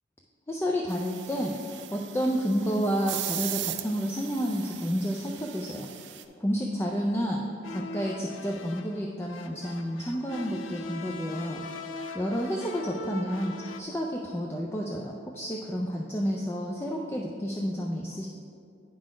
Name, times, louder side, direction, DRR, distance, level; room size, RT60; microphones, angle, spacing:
voice 1, 0.5-1.5 1.9-5.9 6.4-7.4 7.7-11.7 12.1-18.3, equal, 10° left, -1 dB, 0.3 m, -30 dB
sound 1, 0.9-6.2, right 13 dB, 60° right, 0.4 m, -38 dB
sound 2, 7.6-13.8, left 2 dB, 80° left, 0.4 m, -40 dB
9.9 x 3.8 x 5.0 m, 2.5 s
head